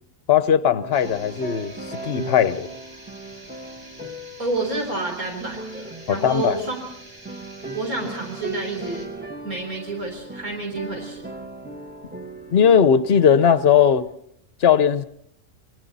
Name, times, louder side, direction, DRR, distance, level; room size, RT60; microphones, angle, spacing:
voice 1, 0.3-2.7 6.1-6.6 12.5-14.0 14.6-15.0, left 8 dB, 50° left, 1.1 m, -18 dB
sound 1, 0.8-14.1, right 2 dB, 5° right, 1.2 m, -38 dB
sound 2, 0.9-9.1, right 1 dB, 55° right, 6.3 m, -47 dB
voice 2, 4.4-6.8 7.7-9.1 9.4-11.3, right 2 dB, 75° right, 4.4 m, -29 dB
29.0 x 21.5 x 4.2 m
omnidirectional pair, 1.5 m